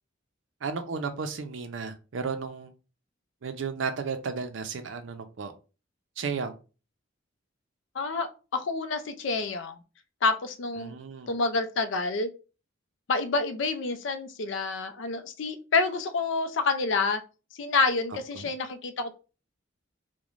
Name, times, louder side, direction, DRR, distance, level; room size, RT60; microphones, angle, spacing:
voice 1, 0.6-2.7 3.4-5.5 6.2-6.5 10.8-11.3 18.4-18.5, right 5 dB, 70° right, 8 dB, 0.5 m, -33 dB
voice 2, 7.9-9.8 10.2-10.9 11.3-12.3 13.1-17.2 17.6-19.2, left 3 dB, 65° left, 8 dB, 0.4 m, -28 dB
3.0 x 2.1 x 2.4 m, 0.32 s
head